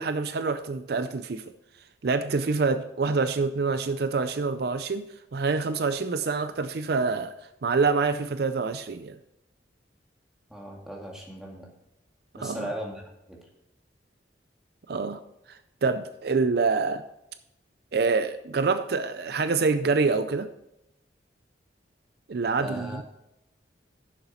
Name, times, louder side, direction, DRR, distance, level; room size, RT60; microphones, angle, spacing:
voice 1, 0.0-1.4 2.0-7.3 7.6-9.2 12.4-12.7 14.9-15.2 15.5-17.0 17.9-20.5 22.3-23.0, right 4 dB, 60° right, 11 dB, 0.4 m, -26 dB
voice 2, 10.5-11.7 12.4-13.0 13.3-13.4 22.6-23.0, equal, 5° right, -2 dB, 2.0 m, -37 dB
11.0 x 6.9 x 4.2 m, 0.86 s
head